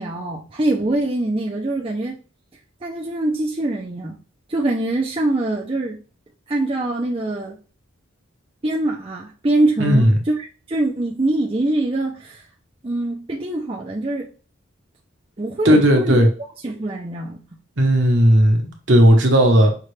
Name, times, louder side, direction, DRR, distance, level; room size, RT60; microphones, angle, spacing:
voice 1, 0.0-2.2 2.8-4.2 4.5-6.0 6.5-7.6 8.6-10.4 10.7-12.4 12.8-14.3 15.4-16.3 16.6-17.4, right 2 dB, 25° right, 0.5 m, -23 dB
voice 2, 9.8-10.2 15.6-16.3 17.8-19.7, equal, 65° right, 1.1 m, -14 dB
5.7 x 2.4 x 3.3 m
head